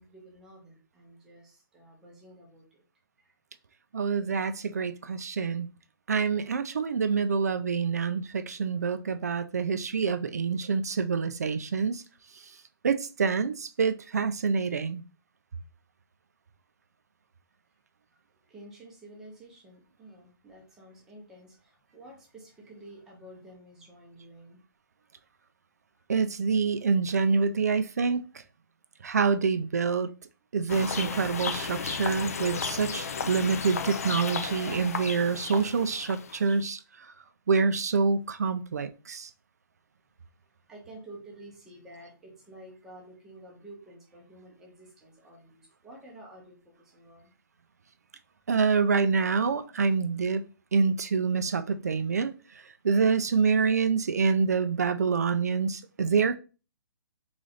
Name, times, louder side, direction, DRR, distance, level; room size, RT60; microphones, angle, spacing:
voice 1, 0.0-2.8 18.4-24.6 40.7-47.3, right 1 dB, 5° right, 0.6 m, -50 dB
voice 2, 3.9-5.7 6.1-12.0 12.8-15.0 26.1-28.2 29.0-30.1 30.5-36.8 37.5-39.3 48.5-50.4 50.7-52.3 52.8-56.4, right 5 dB, 45° right, 0.3 m, -26 dB
sound 1, 30.7-36.6, left 6 dB, 40° left, 0.4 m, -34 dB
3.8 x 3.2 x 3.8 m
hypercardioid pair, 180°, 12 cm